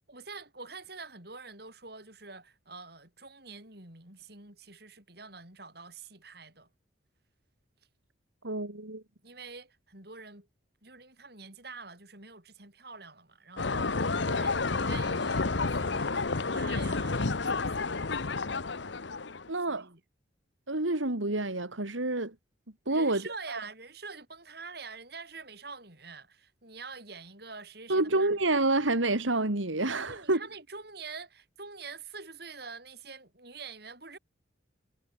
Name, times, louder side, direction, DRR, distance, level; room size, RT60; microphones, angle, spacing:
voice 1, 0.1-6.7 9.2-10.5 10.8-17.9 19.7-20.0 22.9-28.4 30.0-34.2, right 4 dB, 55° right, 6.7 m, -46 dB
voice 2, 8.4-9.0 19.5-19.9 20.7-22.3 22.9-23.2 23.5-23.6 27.9-30.4, right 2 dB, 85° right, 2.8 m, -28 dB
sound 1, 13.6-19.5, left 3 dB, 70° left, 1.0 m, -30 dB
head